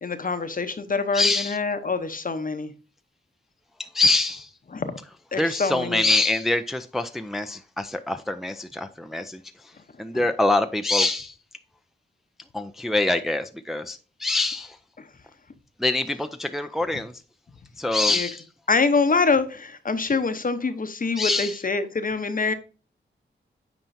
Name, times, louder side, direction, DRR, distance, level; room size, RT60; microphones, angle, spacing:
voice 1, 0.0-2.7 4.7-5.0 5.3-6.1 15.0-15.1 18.1-18.3 18.7-22.5, left 4 dB, 40° left, 0.8 m, -25 dB
voice 2, 1.1-1.6 3.8-4.5 5.4-9.4 10.0-11.3 12.5-14.8 15.8-17.1 17.8-18.4 21.2-21.5, left 2 dB, ahead, 0.5 m, -24 dB
9.0 x 4.4 x 2.6 m
cardioid pair, 65°, 21 cm